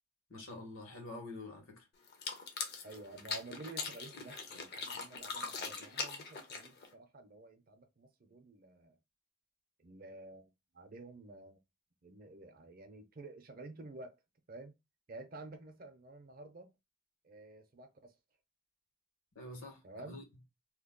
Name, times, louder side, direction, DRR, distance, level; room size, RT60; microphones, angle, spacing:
voice 1, 0.3-1.8 19.3-19.8 20.1-20.2, left 2 dB, 80° left, 1.5 m, -46 dB
sound 1, 2.1-6.9, left 4 dB, 50° left, 0.7 m, -41 dB
voice 2, 2.8-9.0 9.8-11.6 12.0-14.1 14.5-14.8 15.1-16.7 17.2-18.1 19.8-20.3, right 2 dB, 45° right, 0.6 m, -51 dB
2.9 x 2.3 x 3.7 m
head